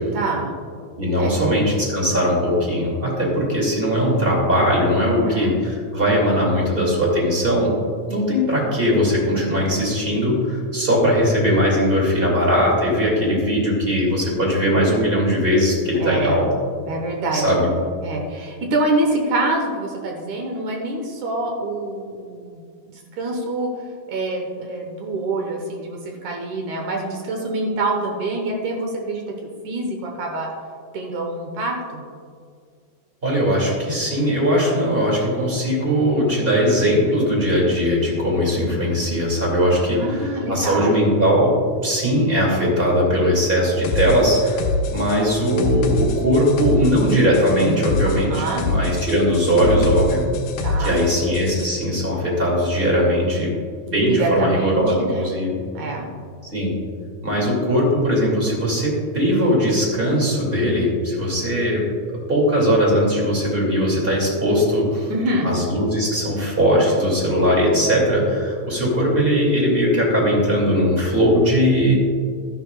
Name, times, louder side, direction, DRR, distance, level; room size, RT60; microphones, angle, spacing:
voice 1, 0.1-0.5 1.2-1.3 5.0-5.5 16.0-16.4 16.9-17.5 18.0-23.7 24.1-29.2 29.6-30.5 30.9-32.0 39.9-41.0 48.3-48.6 50.6-51.0 54.1-55.3 55.7-56.1 65.1-65.5, right 2 dB, 70° right, 1 dB, 2.1 m, -26 dB
voice 2, 1.0-7.7 8.1-16.4 17.3-17.7 33.2-41.6 41.8-50.3 50.8-53.5 53.9-55.6 56.5-56.7 57.2-61.8 62.1-65.1 65.4-72.0, equal, 20° right, -3 dB, 1.9 m, -19 dB
sound 1, 43.8-51.7, left 3 dB, 70° left, 2.1 m, -25 dB
13.0 x 11.0 x 2.3 m, 2.1 s
omnidirectional pair, 4.3 m